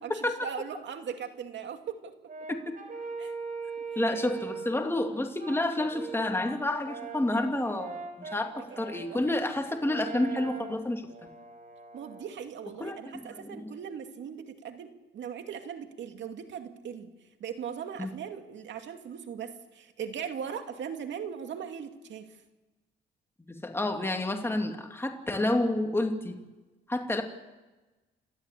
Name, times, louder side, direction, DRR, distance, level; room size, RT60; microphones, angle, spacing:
voice 1, 0.0-2.1 3.2-3.3 9.0-9.2 11.9-17.1 17.4-22.3, right 7 dB, 65° right, 6 dB, 2.4 m, -39 dB
Brass instrument, 2.3-4.8 5.4-12.3, right 5 dB, 40° right, 4.3 m, -41 dB
voice 2, 4.0-11.1 12.8-13.7 18.0-18.1 23.5-26.4 26.9-27.2, left 1 dB, 10° left, 3 dB, 2.8 m, -30 dB
29.5 x 13.0 x 8.5 m, 1.2 s
cardioid pair, 90°, 20 cm